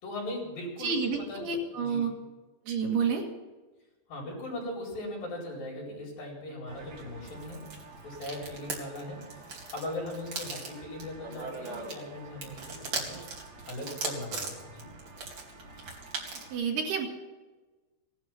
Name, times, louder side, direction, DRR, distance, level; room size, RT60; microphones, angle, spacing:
voice 1, 0.0-1.5 1.7-2.1 4.1-7.6 8.0-9.2 9.7-13.2 13.7-14.9, left 1 dB, 55° left, -4 dB, 6.3 m, -39 dB
voice 2, 0.8-2.1 2.6-3.2 16.5-17.1, right 5 dB, 70° right, 1 dB, 3.7 m, -29 dB
sound 1, 6.7-16.5, right 3 dB, 40° right, 3.2 m, -40 dB
17.5 x 12.0 x 6.0 m, 1.2 s
omnidirectional pair, 5.1 m